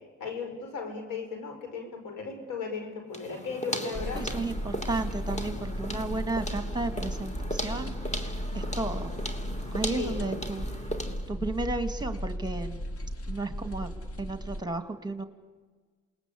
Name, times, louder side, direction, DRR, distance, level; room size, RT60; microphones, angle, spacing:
voice 1, 0.2-4.2 5.3-5.7 9.9-10.3, left 5 dB, 85° left, 4 dB, 5.4 m, -36 dB
sound 1, 3.1-11.3, equal, 20° left, 3.1 m, -37 dB
Russell Square - The 'silence' of a London lift, 3.9-14.6, equal, 45° left, 2.0 m, -35 dB
voice 2, 4.2-9.1 9.7-10.7 11.3-12.8 13.3-13.9 14.2-15.2, right 3 dB, 15° right, 8 dB, 2.2 m, -33 dB
28.0 x 20.5 x 8.5 m, 1.5 s
supercardioid pair, 60°, 32 cm